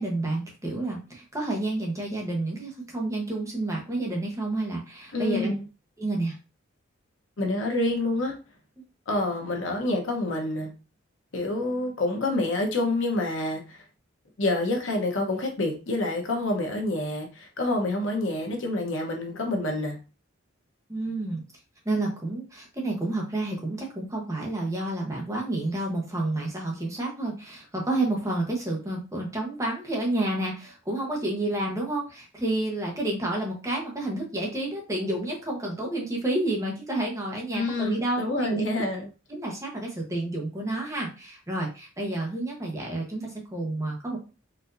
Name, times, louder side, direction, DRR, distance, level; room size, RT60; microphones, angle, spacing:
voice 1, 0.0-5.5 6.0-6.4 20.9-21.4 21.8-38.8 39.3-44.2, right 2 dB, 15° right, -1 dB, 0.9 m, -30 dB
voice 2, 5.1-5.6 7.4-8.3 9.1-10.7 11.3-13.8 14.4-20.0 37.5-39.1, left 2 dB, 70° left, 2 dB, 0.9 m, -27 dB
4.3 x 2.6 x 2.5 m, 0.32 s
head